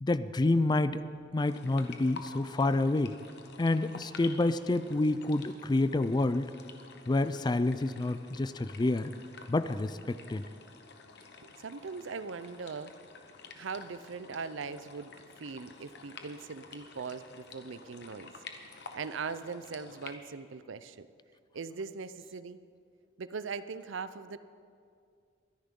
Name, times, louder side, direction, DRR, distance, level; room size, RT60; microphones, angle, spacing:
voice 1, 0.0-1.0 1.3-3.1 3.6-6.5 7.1-9.1 9.5-10.4, left 2 dB, 25° left, 13 dB, 0.4 m, -28 dB
sound 1, 1.5-20.2, left 4 dB, 60° left, 1.1 m, -50 dB
voice 2, 11.4-13.0 13.5-18.3 18.9-21.1 21.5-22.6 23.2-24.4, right 5 dB, 90° right, 13 dB, 0.6 m, -40 dB
24.0 x 10.5 x 3.8 m, 2.3 s
head